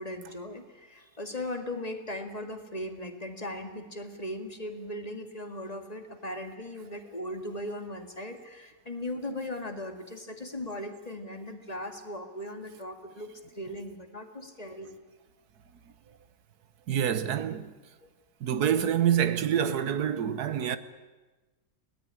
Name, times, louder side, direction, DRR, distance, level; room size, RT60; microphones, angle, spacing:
voice 1, 0.0-14.9 18.0-18.1, left 1 dB, 25° left, 2.1 m, -38 dB
voice 2, 16.9-17.7 18.4-20.8, right 9 dB, 70° right, 1.6 m, -26 dB
21.5 x 18.0 x 9.9 m
omnidirectional pair, 1.7 m